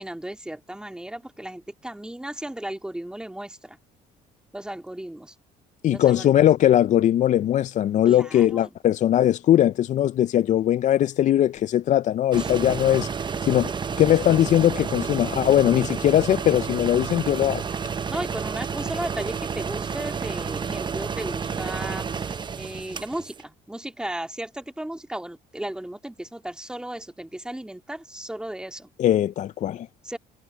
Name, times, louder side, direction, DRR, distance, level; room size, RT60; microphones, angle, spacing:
voice 1, 0.0-3.8 4.5-5.3 5.9-6.4 8.1-8.7 12.4-12.5 13.5-13.9 18.1-28.9 30.0-30.2, right 1 dB, 5° right, 2.4 m, -35 dB
voice 2, 5.8-13.1 13.4-17.6 29.0-29.9, left 12 dB, 45° left, 0.4 m, -20 dB
compressor de ar liga e des, 12.3-23.4, right 6 dB, 25° right, 0.8 m, -30 dB
cardioid pair, 110°, 17 cm